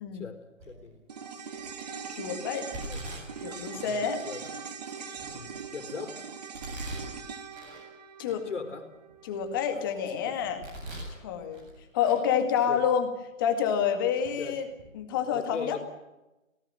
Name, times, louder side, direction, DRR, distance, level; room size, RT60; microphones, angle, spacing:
voice 1, 0.1-1.1 2.8-3.0 3.7-4.4 5.3-6.3 8.5-8.9 9.7-10.3 12.7-12.8 14.4-14.6 15.1-15.8, left 5 dB, 65° left, 8 dB, 4.1 m, -40 dB
Domestic sounds home sounds, 0.6-1.0 1.5-2.0 2.7-3.9 4.4-4.5 5.1-5.9 6.5-7.9 8.3-8.4 8.9-9.9 10.4-11.2 11.5-12.2 12.5-12.7 13.5-13.6 14.2-14.3 14.7-14.9, right 1 dB, 15° right, 8.0 m, -42 dB
sound 1, 1.1-9.6 9.9-10.0, right 6 dB, 30° right, 2.0 m, -41 dB
voice 2, 2.1-2.7 3.4-4.2 8.2-8.4 9.2-10.6 11.2-11.7 11.9-13.1 13.4-14.7 14.9-15.8, left 8 dB, 15° left, 6 dB, 2.0 m, -28 dB
26.0 x 18.5 x 7.6 m, 1.0 s
hypercardioid pair, 175°, 39 cm